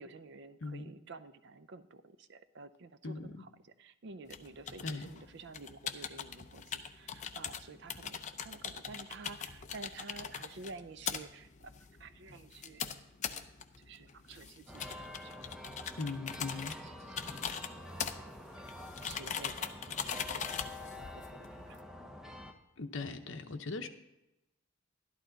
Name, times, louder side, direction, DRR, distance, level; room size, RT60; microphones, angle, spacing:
voice 1, 0.0-3.5 3.8-11.7 12.0-13.0 13.8-15.6 16.0-16.2 16.5-18.7 19.0-22.1, right 3 dB, 55° right, 12 dB, 0.5 m, -51 dB
voice 2, 0.6-0.9 3.0-3.4 4.8-5.1 16.0-16.8 22.8-23.9, left 3 dB, 65° left, 7 dB, 0.8 m, -39 dB
sound 1, 4.3-21.8, left 7 dB, 35° left, 0.5 m, -42 dB
sound 2, 14.7-22.5, left 1 dB, 5° right, 0.6 m, -47 dB
12.0 x 11.5 x 3.9 m, 0.92 s
head